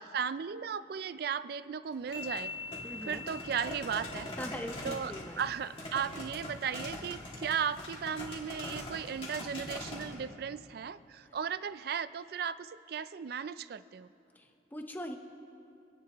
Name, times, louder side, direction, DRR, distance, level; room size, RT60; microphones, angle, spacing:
voice 1, 0.0-2.5 3.0-4.3 4.8-14.1, right 7 dB, 55° right, 15 dB, 0.3 m, -36 dB
sound 1, 1.9-10.1, left 1 dB, 30° left, 2.2 m, -43 dB
sound 2, 2.1-5.7, left 4 dB, 55° left, 2.7 m, -45 dB
voice 2, 2.8-3.3 4.4-5.4 14.3-15.2, equal, 10° left, 4 dB, 0.7 m, -41 dB
26.5 x 10.5 x 3.0 m, 2.6 s
head